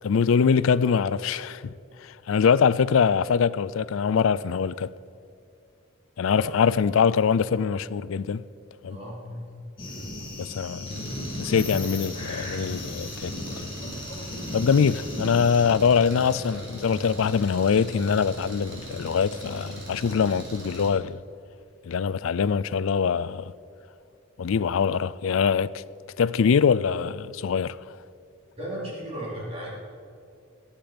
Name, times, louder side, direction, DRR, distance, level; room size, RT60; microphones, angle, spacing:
voice 1, 0.0-1.7 2.0-4.9 6.2-8.4 8.8-9.0 10.4-11.1 11.4-13.6 14.5-21.2 21.9-23.5 24.4-25.8 26.2-27.8, left 6 dB, 75° left, 0.4 m, -23 dB
voice 2, 8.9-9.5 9.8-10.1 14.1-14.6 28.6-29.7, equal, 30° right, 3.9 m, -36 dB
sound 1, 9.8-15.7, left 1 dB, 25° left, 3.2 m, -36 dB
Engine, 10.9-20.9, right 1 dB, 60° right, 3.4 m, -40 dB
20.0 x 9.0 x 5.1 m
head